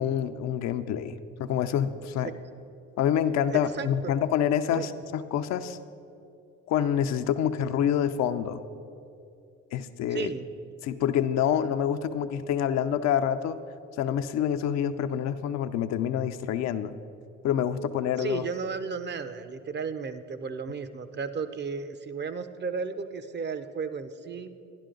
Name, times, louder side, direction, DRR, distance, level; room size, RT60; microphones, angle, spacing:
voice 1, 0.0-2.3 3.0-5.8 6.7-8.6 9.7-10.3 10.8-13.6 14.0-16.9 17.4-18.4, left 9 dB, 65° left, 10 dB, 0.6 m, -27 dB
voice 2, 3.5-4.2 4.7-4.9 10.1-10.5 18.2-24.5, right 5 dB, 35° right, 12 dB, 0.7 m, -34 dB
11.5 x 11.0 x 3.8 m, 2.6 s
supercardioid pair, 70°, 29 cm